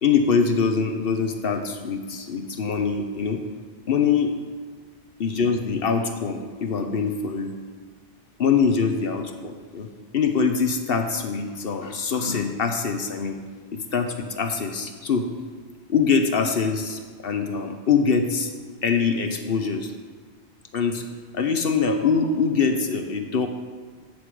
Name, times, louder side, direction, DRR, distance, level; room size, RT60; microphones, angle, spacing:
voice 1, 0.0-3.4 3.9-4.4 5.2-7.5 8.4-9.9 10.1-13.4 13.7-15.3 15.9-18.5 18.8-19.9 20.7-21.0 21.3-23.5, left 5 dB, 60° left, 6 dB, 0.9 m, -23 dB
11.5 x 8.0 x 4.8 m, 1.5 s
omnidirectional pair, 1.2 m